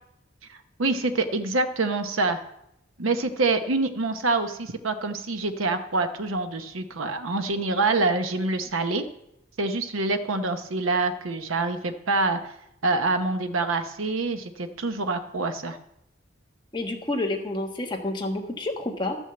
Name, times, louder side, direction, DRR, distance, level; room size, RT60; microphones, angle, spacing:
voice 1, 0.8-2.4 3.0-9.0 9.6-12.4 12.8-15.8, right 3 dB, 85° right, 8 dB, 0.9 m, -26 dB
voice 2, 16.7-19.2, left 2 dB, 20° left, 2 dB, 1.4 m, -29 dB
12.5 x 6.3 x 7.8 m, 0.81 s
head